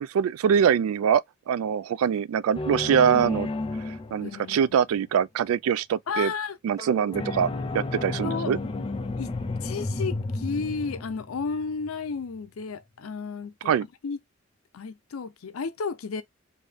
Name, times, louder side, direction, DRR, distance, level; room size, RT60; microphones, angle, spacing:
voice 1, 0.0-3.5 4.1-6.3 6.6-8.6 13.7-13.9, right 8 dB, 85° right, 0.3 m, -23 dB
sound 1, 2.5-4.8 7.1-12.1, left 2 dB, 25° left, 0.4 m, -32 dB
voice 2, 4.2-4.6 6.1-6.6 8.2-8.5 9.2-9.3 9.6-13.8 14.0-14.2 14.7-16.2, left 5 dB, 90° left, 0.5 m, -32 dB
sound 2, 6.8-9.4, right 3 dB, 15° right, 0.9 m, -48 dB
3.5 x 2.7 x 3.3 m
head